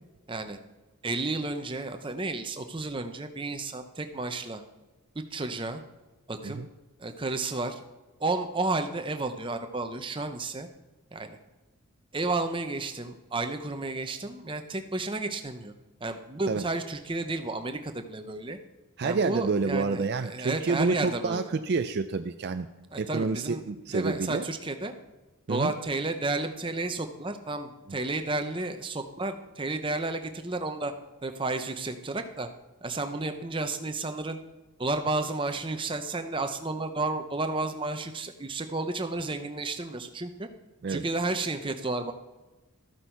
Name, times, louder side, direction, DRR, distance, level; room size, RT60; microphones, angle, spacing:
voice 1, 0.3-0.6 1.0-4.6 5.1-5.8 6.3-6.6 7.0-7.8 8.2-10.7 11.1-11.4 12.1-15.7 16.0-18.6 19.0-21.5 22.9-23.6 23.9-24.9 25.5-30.9 31.2-32.5 32.8-34.4 34.8-40.5 40.9-42.1, right 2 dB, 25° right, 7 dB, 0.8 m, -32 dB
voice 2, 19.0-22.7 23.0-24.4 25.5-25.7 27.9-28.0 40.8-41.0, right 4 dB, 50° right, 9 dB, 0.4 m, -28 dB
13.0 x 8.3 x 4.6 m, 1.1 s
head